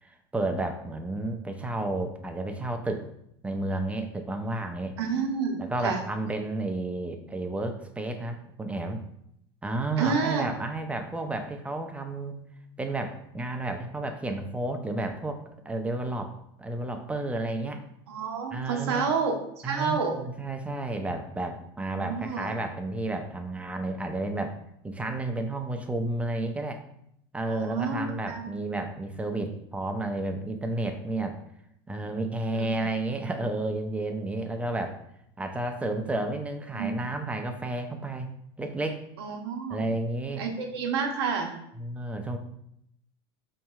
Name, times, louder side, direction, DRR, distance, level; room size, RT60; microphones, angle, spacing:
voice 1, 0.0-3.1 3.4-5.0 5.6-9.0 9.6-12.4 12.8-17.8 18.5-19.1 19.6-24.6 24.8-26.8 27.3-31.4 31.9-35.0 35.4-38.3 38.6-39.0 39.7-40.5 41.8-42.4, right 2 dB, 10° right, 5 dB, 0.5 m, -31 dB
voice 2, 5.0-6.0 10.0-10.5 18.1-20.2 21.9-22.5 27.5-28.5 32.5-32.9 36.7-37.1 39.2-39.8 40.4-41.5, right 5 dB, 85° right, 3 dB, 0.8 m, -29 dB
5.2 x 2.8 x 2.3 m, 0.74 s
supercardioid pair, 105°, 13 cm